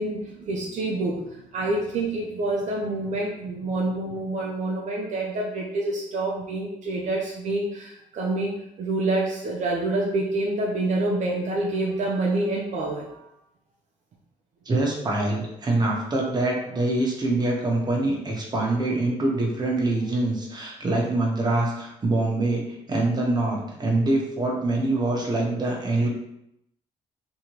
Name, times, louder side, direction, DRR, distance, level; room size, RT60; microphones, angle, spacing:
voice 1, 0.0-13.2, right 2 dB, 60° right, -2 dB, 0.7 m, -27 dB
voice 2, 14.6-22.6 22.9-26.1, right 2 dB, 30° right, -1 dB, 1.2 m, -24 dB
3.4 x 3.0 x 3.0 m, 0.79 s
supercardioid pair, 75°, 14 cm